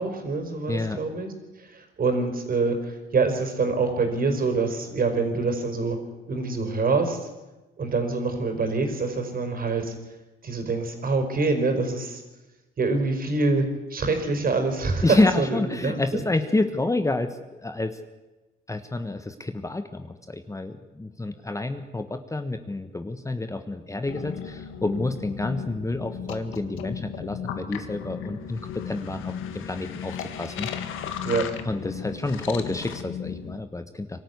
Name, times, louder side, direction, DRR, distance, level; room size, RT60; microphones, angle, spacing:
voice 1, 0.0-1.3 1.6-6.0 6.3-7.3 7.8-9.9 10.4-12.2 12.8-16.2 31.2-31.5, right 3 dB, 45° right, 6 dB, 4.9 m, -25 dB
voice 2, 0.7-1.0 15.0-18.0 18.7-30.7 31.6-34.2, left 2 dB, 15° left, 8 dB, 1.3 m, -28 dB
sound 1, 24.0-33.6, left 8 dB, 85° left, 1.8 m, -35 dB
23.5 x 13.5 x 9.6 m, 1.1 s
cardioid pair, 90°, 20 cm